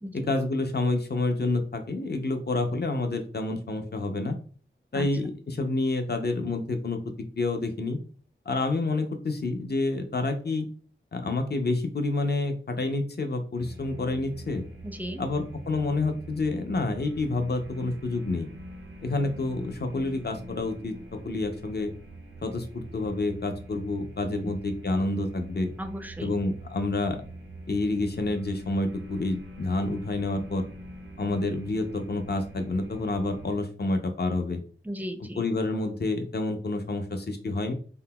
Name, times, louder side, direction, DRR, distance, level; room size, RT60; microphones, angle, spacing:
voice 1, 0.1-4.4 4.9-7.0 7.4-8.0 8.5-10.7 11.1-14.6 15.2-18.5 19.0-21.9 22.4-25.7 26.2-27.2 27.7-30.7 31.2-34.6 35.4-37.7, left 2 dB, 50° left, 6 dB, 0.6 m, -28 dB
sound 1, 13.6-33.5, right 1 dB, 75° right, 0.5 m, -44 dB
voice 2, 14.8-15.3 24.3-24.6 25.8-26.4 34.8-35.5, equal, 10° right, 6 dB, 0.4 m, -36 dB
3.7 x 2.1 x 2.2 m, 0.42 s
wide cardioid pair, 40°, 21 cm